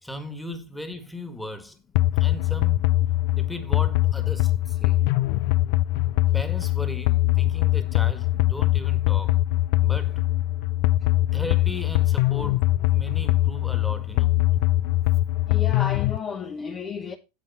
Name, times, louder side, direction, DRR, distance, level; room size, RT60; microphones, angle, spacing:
voice 1, 0.0-1.8 2.2-2.9 3.4-5.0 6.3-9.4 9.8-10.2 10.6-10.7 11.1-12.6 12.9-14.7, left 1 dB, 5° left, 1.8 m, -37 dB
sound 1, 1.9-16.2, left 16 dB, 60° left, 0.5 m, -22 dB
voice 2, 15.5-17.2, left 6 dB, 30° left, 1.0 m, -32 dB
9.5 x 7.6 x 4.2 m
supercardioid pair, 120°, 0 cm